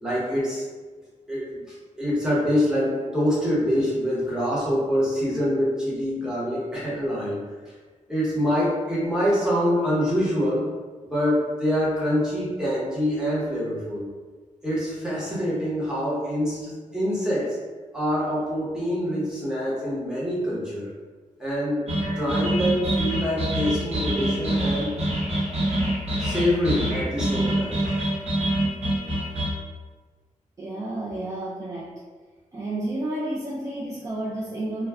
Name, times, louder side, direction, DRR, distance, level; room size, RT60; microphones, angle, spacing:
voice 1, 0.0-0.6 1.3-7.4 8.1-10.7 11.1-14.1 14.6-17.6 17.9-20.9 21.4-21.9 22.1-25.0 26.2-28.1, equal, 5° right, -8 dB, 0.9 m, -25 dB
sound 1, 21.9-29.5, right 1 dB, 50° right, 0.9 m, -25 dB
voice 2, 30.6-32.0 32.5-34.9, right 1 dB, 25° right, -6 dB, 0.4 m, -31 dB
2.2 x 2.2 x 3.4 m, 1.4 s
wide cardioid pair, 125°, 13 cm